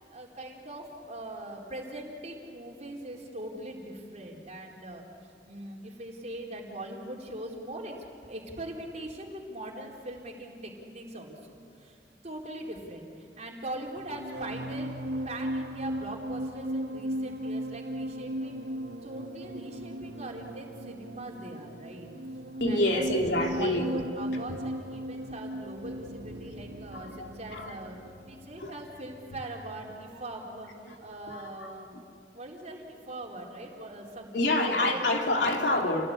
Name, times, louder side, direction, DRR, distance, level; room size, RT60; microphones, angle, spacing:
voice 1, 0.1-7.9 8.2-12.0 12.2-14.9 15.2-18.6 19.0-22.1 22.7-28.0 28.3-30.7 31.0-32.1 32.3-35.0, right 1 dB, 40° right, -1 dB, 4.4 m, -41 dB
sound 1, 13.9-30.6 30.9-31.2, equal, 80° right, 1.8 m, -37 dB
voice 2, 22.6-23.9 26.9-27.8 28.6-28.7 31.3-31.7 34.3-36.1, left 1 dB, 80° left, 1 dB, 3.3 m, -27 dB
29.0 x 19.0 x 9.9 m, 2.5 s
head